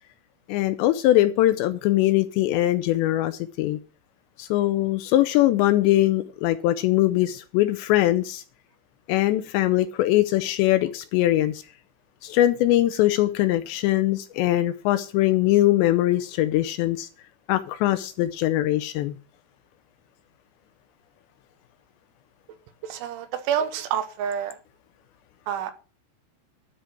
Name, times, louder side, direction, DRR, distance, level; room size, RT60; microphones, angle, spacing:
voice 1, 0.5-3.8 4.4-8.4 9.1-11.6 12.2-17.1 17.5-19.2, left 15 dB, 80° left, 2.6 m, -22 dB
voice 2, 22.8-24.6 25.5-25.7, right 8 dB, 85° right, 3.6 m, -28 dB
12.5 x 4.9 x 7.5 m
omnidirectional pair, 5.5 m